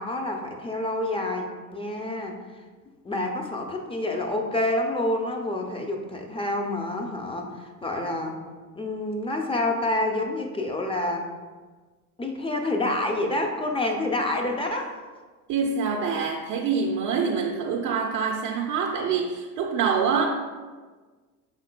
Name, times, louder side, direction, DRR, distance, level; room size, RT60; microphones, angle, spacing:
voice 1, 0.0-2.4 3.0-8.4 8.8-11.3 12.2-15.0, left 1 dB, 15° left, 2 dB, 0.5 m, -28 dB
voice 2, 15.5-20.3, right 5 dB, 45° right, 0 dB, 0.5 m, -25 dB
4.9 x 3.6 x 2.2 m, 1.4 s
hypercardioid pair, 70°, 44 cm